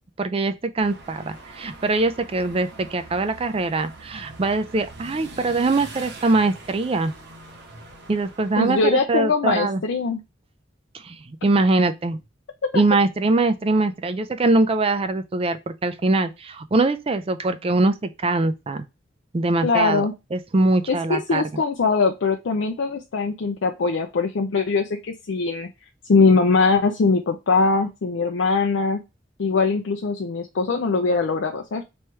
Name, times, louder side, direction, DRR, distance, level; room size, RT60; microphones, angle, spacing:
voice 1, 0.2-7.1 8.1-9.8 11.0-12.2 12.7-18.9 19.3-21.4, right 2 dB, 30° right, 0.4 m, -22 dB
sound 1, 0.8-8.8, right 2 dB, 60° right, 1.1 m, -43 dB
voice 2, 8.6-10.2 19.6-20.1 20.9-25.7 26.0-29.0 29.4-31.8, left 4 dB, 75° left, 0.5 m, -21 dB
3.1 x 3.0 x 4.5 m
head